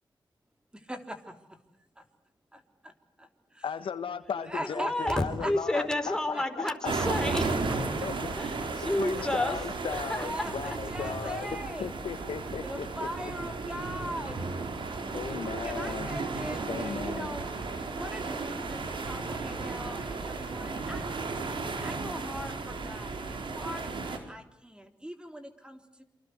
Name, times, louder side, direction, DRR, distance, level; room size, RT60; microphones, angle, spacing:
voice 1, 0.7-1.6 2.0-2.1 2.5-2.9 3.2-3.6 4.5-6.8 10.2-11.9 12.6-14.5 15.6-17.5 17.9-21.1 21.7-26.0, equal, 10° right, 6 dB, 3.6 m, -40 dB
voice 2, 3.6-6.9 8.0-8.2 9.0-11.5 11.8-13.1 15.1-16.1 16.7-17.3, left 7 dB, 75° left, 11 dB, 1.4 m, -36 dB
voice 3, 4.6-7.5 8.4-9.6 10.1-10.2, left 1 dB, 5° left, 6 dB, 4.7 m, -30 dB
sound 1, 6.8-24.2, right 3 dB, 70° right, 4.6 m, -34 dB
27.5 x 25.5 x 8.1 m, 0.81 s
cardioid pair, 75°, 9 cm